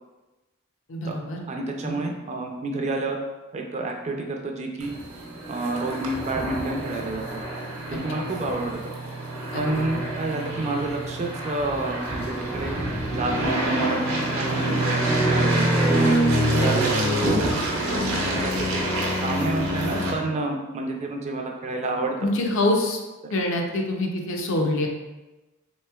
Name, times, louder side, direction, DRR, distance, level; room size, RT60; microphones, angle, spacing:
voice 1, 0.9-1.5 1.8-2.0 8.2-8.3 9.5-9.9 16.5-16.8 22.2-23.0 23.3-24.9, left 1 dB, 65° left, 1 dB, 0.5 m, -26 dB
voice 2, 1.5-3.2 3.5-4.9 5.5-7.4 7.9-8.8 9.5-12.7 13.1-14.0 14.3-15.7 16.6-16.9 17.2-17.5 17.9-18.8 19.2-22.1, right 2 dB, 30° right, 2 dB, 0.3 m, -29 dB
sound 1, 4.8-20.1, right 1 dB, 80° right, 0.7 m, -26 dB
3.4 x 3.0 x 2.2 m, 1.1 s
head